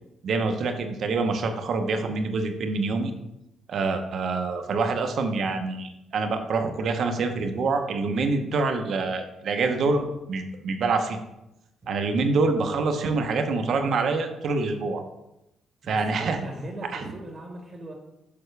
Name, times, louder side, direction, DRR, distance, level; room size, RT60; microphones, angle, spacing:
voice 1, 0.2-3.1 3.7-11.2 11.9-15.0 15.9-16.4 16.9-17.1, right 3 dB, 60° right, 5 dB, 0.9 m, -26 dB
voice 2, 15.8-17.9, right 1 dB, 35° right, 2 dB, 1.2 m, -39 dB
6.9 x 5.3 x 3.3 m, 0.88 s
cardioid pair, 90°, 0 cm